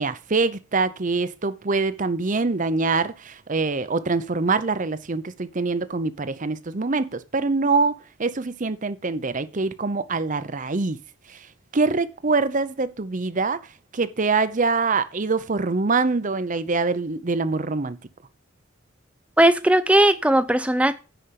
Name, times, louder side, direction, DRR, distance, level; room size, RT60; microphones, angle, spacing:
voice 1, 0.0-7.9 8.2-11.0 11.3-11.4 11.7-13.6 13.9-18.0, right 3 dB, 40° right, 0.7 m, -24 dB
voice 2, 19.4-20.9, right 1 dB, 5° right, 0.7 m, -18 dB
10.0 x 5.2 x 6.9 m
head